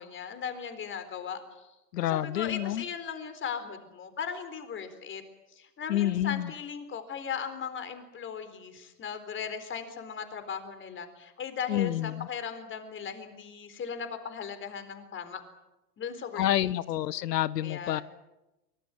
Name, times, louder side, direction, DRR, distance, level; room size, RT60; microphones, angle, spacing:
voice 1, 0.0-1.7 2.1-5.2 5.5-15.4 16.0-16.8 17.6-18.0, left 7 dB, 25° left, 10 dB, 4.1 m, -38 dB
voice 2, 1.9-2.8 5.9-6.5 11.7-12.3 16.4-18.0, left 13 dB, 80° left, 19 dB, 1.0 m, -28 dB
24.0 x 20.5 x 9.1 m, 0.99 s
hypercardioid pair, 120°, 48 cm